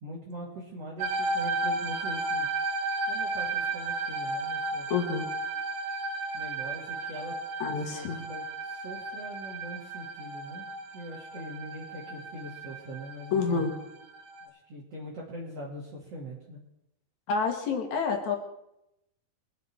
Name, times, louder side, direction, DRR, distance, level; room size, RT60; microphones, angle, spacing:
voice 1, 0.0-2.5 3.1-4.9 6.3-7.4 7.8-10.7 10.9-13.7 14.4-16.6, equal, 45° right, -4 dB, 3.1 m, -42 dB
sound 1, 1.0-14.5, right 2 dB, 65° right, 3.3 m, -34 dB
voice 2, 4.9-5.3 7.6-8.2 13.3-13.7 17.3-18.4, left 5 dB, 60° left, 3 dB, 2.8 m, -28 dB
23.0 x 8.1 x 4.5 m, 0.83 s
omnidirectional pair, 4.0 m